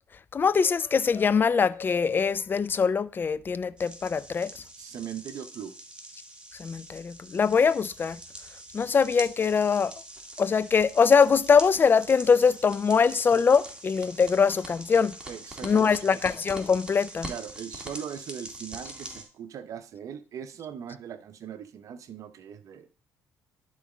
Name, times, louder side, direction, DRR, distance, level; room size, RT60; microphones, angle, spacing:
voice 1, 0.3-4.6 6.6-8.2 8.7-9.9 10.4-15.1 15.6-17.3, left 6 dB, 30° left, 0.5 m, -23 dB
sound 1, 3.8-19.2, right 1 dB, 15° right, 2.1 m, -44 dB
voice 2, 4.8-5.7 15.3-16.2 17.2-22.9, right 8 dB, 55° right, 0.8 m, -40 dB
11.0 x 4.0 x 4.9 m
supercardioid pair, 80°, 6 cm